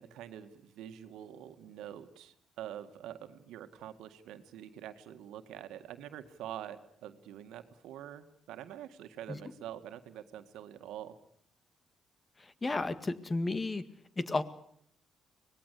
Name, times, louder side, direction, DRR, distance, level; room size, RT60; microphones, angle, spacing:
voice 1, 0.0-11.1, right 11 dB, 85° right, 9 dB, 1.9 m, -46 dB
voice 2, 12.6-13.8 14.2-14.4, left 2 dB, 25° left, 13 dB, 1.9 m, -32 dB
25.0 x 19.5 x 8.4 m, 0.66 s
cardioid pair, 90°, 0 cm